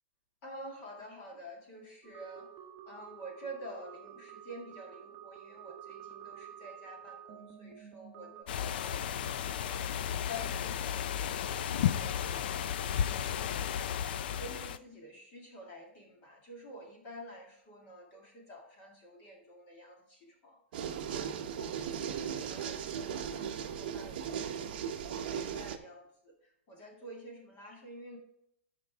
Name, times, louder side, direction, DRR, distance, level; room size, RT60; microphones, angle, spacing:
voice 1, 0.4-2.5 2.9-13.8 14.1-28.2, equal, 25° left, 0 dB, 1.9 m, -49 dB
sound 1, 2.0-8.4, right 9 dB, 20° right, 1.1 m, -50 dB
sound 2, 8.5-14.8, left 9 dB, 50° left, 0.5 m, -33 dB
sound 3, 20.7-25.8, right 8 dB, 50° right, 0.9 m, -37 dB
13.5 x 5.3 x 3.5 m, 0.74 s
supercardioid pair, 175°, 6 cm